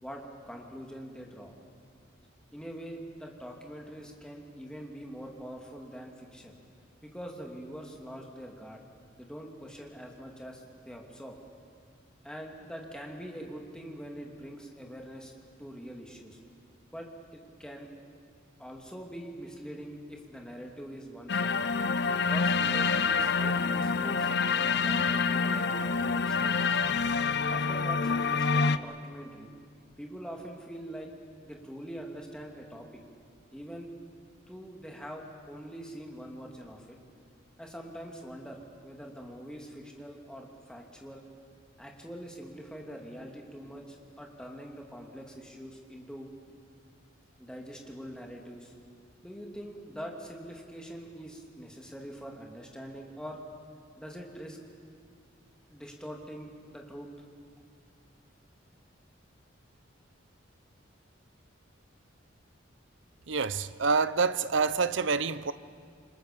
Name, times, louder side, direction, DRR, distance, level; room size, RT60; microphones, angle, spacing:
voice 1, 0.0-1.5 2.5-6.5 7.0-8.8 9.2-11.4 12.2-15.3 15.6-16.4 16.9-17.9 18.6-21.7 22.3-24.3 24.7-26.9 27.5-29.5 30.0-31.1 31.4-32.9 33.5-33.9 34.5-37.0 37.6-41.2 41.8-46.3 47.4-48.7 49.2-53.4 54.0-54.6 55.7-57.1, equal, 5° left, 2.7 m, -44 dB
sound 1, 21.3-28.8, left 5 dB, 55° left, 0.7 m, -27 dB
voice 2, 63.3-65.5, right 4 dB, 70° right, 0.8 m, -27 dB
28.5 x 25.5 x 6.9 m
head